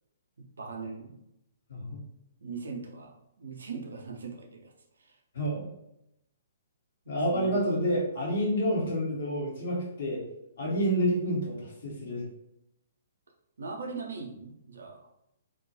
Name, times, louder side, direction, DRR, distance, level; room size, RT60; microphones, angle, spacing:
voice 1, 0.4-1.2 2.4-4.7 5.0-5.2 7.3-7.8 13.6-15.1, right 4 dB, 65° right, 1 dB, 0.5 m, -40 dB
voice 2, 5.3-5.7 7.1-10.2 10.6-12.2, equal, 55° left, -4 dB, 0.9 m, -29 dB
2.3 x 2.1 x 2.8 m, 0.83 s
figure-of-eight pair, 120°, 0 cm